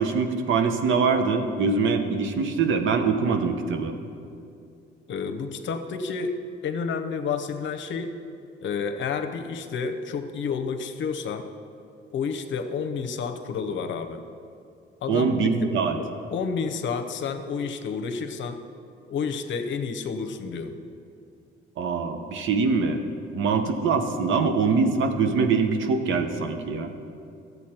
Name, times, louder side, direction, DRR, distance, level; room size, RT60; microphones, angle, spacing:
voice 1, 0.0-4.0 15.1-16.0 21.8-23.0 23.3-26.9, right 4 dB, 75° right, 7 dB, 0.9 m, -23 dB
voice 2, 5.1-8.2 8.6-11.5 12.1-14.2 15.0-15.7 16.0-18.6 19.1-20.8, left 5 dB, 70° left, 8 dB, 0.8 m, -30 dB
12.0 x 8.1 x 4.4 m, 2.4 s
cardioid pair, 90°, 20 cm